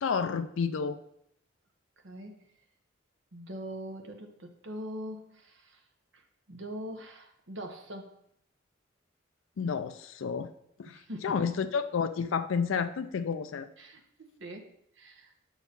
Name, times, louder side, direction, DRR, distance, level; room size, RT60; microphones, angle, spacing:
voice 1, 0.0-1.0 9.6-10.5 10.8-13.7, left 6 dB, 85° left, 9 dB, 0.4 m, -30 dB
voice 2, 2.0-2.5 3.3-5.8 6.1-6.2 6.5-8.1 10.8-11.5 13.8-14.7 14.9-15.3, equal, 70° right, 4 dB, 1.1 m, -42 dB
7.0 x 4.6 x 5.3 m, 0.71 s
head